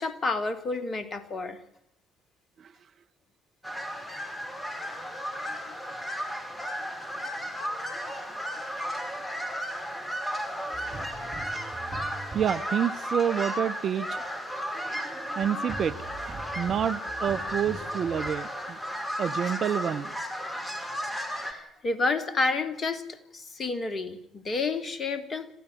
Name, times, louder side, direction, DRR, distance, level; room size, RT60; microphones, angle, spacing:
voice 1, 0.0-1.6 5.5-5.8 6.8-6.9 10.7-10.8 21.4-25.5, left 3 dB, 35° left, 2.8 m, -30 dB
sound 1, 3.6-21.5, equal, 15° left, 5.1 m, -34 dB
sound 2, 10.7-18.3, right 2 dB, 30° right, 7.7 m, -44 dB
voice 2, 12.3-14.2 15.4-16.0 16.3-18.8 19.2-20.1, right 8 dB, 45° right, 0.8 m, -28 dB
26.5 x 15.0 x 9.4 m
figure-of-eight pair, 50°, 0 cm